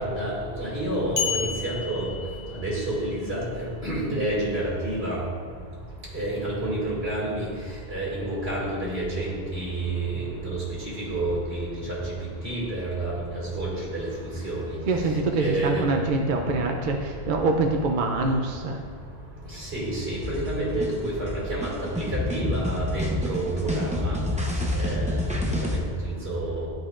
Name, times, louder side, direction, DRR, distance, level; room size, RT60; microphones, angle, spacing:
voice 1, 0.0-2.1 2.5-5.2 6.1-7.5 7.9-10.1 10.4-10.6 11.0-12.1 12.4-14.8 15.4-15.9 19.6-24.2 24.7-25.4 25.7-25.8 26.2-26.7, right 1 dB, 80° right, -5 dB, 2.3 m, -29 dB
sound 1, 1.2-3.0, left 6 dB, 30° left, 0.9 m, -31 dB
voice 2, 14.9-18.8, right 3 dB, 60° right, 2 dB, 0.7 m, -25 dB
sound 2, 20.2-25.8, left 1 dB, 10° right, 0.7 m, -28 dB
12.0 x 5.2 x 2.4 m, 2.1 s
omnidirectional pair, 1.0 m